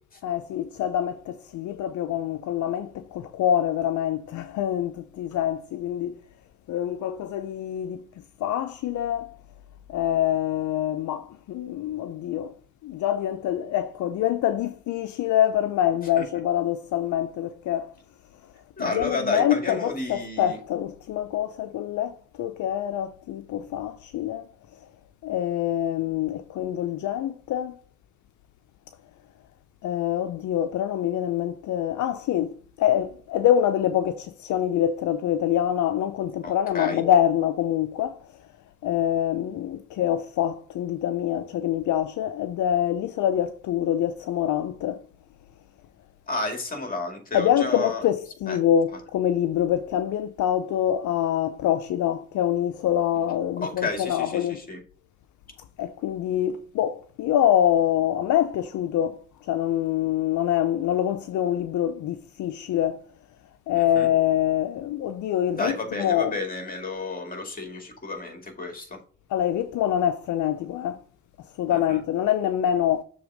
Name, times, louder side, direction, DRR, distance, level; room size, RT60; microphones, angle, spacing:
voice 1, 0.2-6.2 6.7-8.0 8.4-9.4 9.9-12.5 12.8-17.9 18.8-24.8 25.2-27.8 29.8-38.5 38.8-45.0 47.3-54.6 55.8-63.0 63.7-66.4 69.3-71.0 71.4-73.0, left 11 dB, 75° left, 0.6 m, -25 dB
voice 2, 18.8-20.6 36.4-37.0 46.3-48.0 48.5-48.6 53.6-54.8 63.8-64.1 65.5-69.0 71.7-72.0, left 3 dB, 30° left, 2.2 m, -31 dB
6.9 x 3.6 x 4.8 m
cardioid pair, 90°, 30 cm